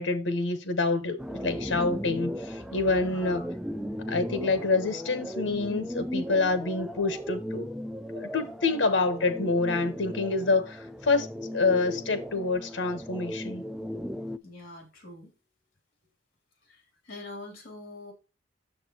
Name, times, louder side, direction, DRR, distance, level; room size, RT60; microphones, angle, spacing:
voice 1, 0.0-3.4 4.1-7.7 8.1-11.3 11.5-13.6, left 3 dB, 75° left, 1.0 m, -27 dB
sound 1, 1.2-14.4, equal, 5° right, 0.3 m, -36 dB
voice 2, 3.0-3.5 14.4-15.3 16.6-18.1, left 2 dB, 55° left, 2.8 m, -44 dB
7.7 x 6.9 x 2.9 m
head